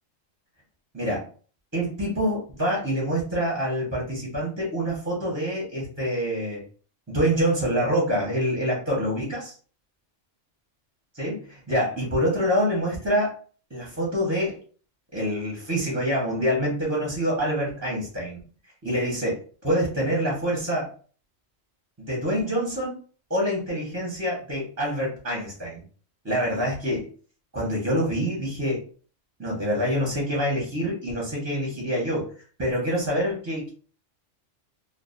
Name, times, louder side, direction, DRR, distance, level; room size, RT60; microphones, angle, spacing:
voice 1, 0.9-1.3 1.7-6.6 7.1-9.5 11.1-13.3 13.7-14.6 15.1-18.4 18.8-19.4 19.6-20.9 22.0-23.0 23.3-25.8 26.2-27.1 27.5-28.8 29.4-32.3 32.6-33.7, equal, 15° right, -4 dB, 0.6 m, -26 dB
2.3 x 2.2 x 2.4 m, 0.41 s
omnidirectional pair, 1.3 m